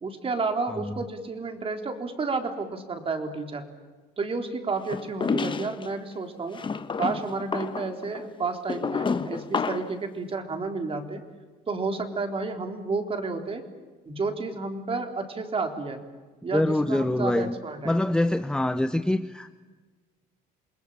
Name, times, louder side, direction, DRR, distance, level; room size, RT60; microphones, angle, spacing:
voice 1, 0.0-3.7 4.2-6.6 7.0-11.2 11.7-13.7 14.1-16.0 16.4-17.9, right 4 dB, 35° right, 5 dB, 3.8 m, -31 dB
sound 1, 4.9-5.9 6.5-10.0, left 5 dB, 30° left, 1.2 m, -30 dB
voice 2, 16.5-17.6 17.8-19.6, left 1 dB, 5° left, 10 dB, 0.8 m, -25 dB
27.5 x 21.0 x 8.8 m, 1.3 s
cardioid pair, 110°, 17 cm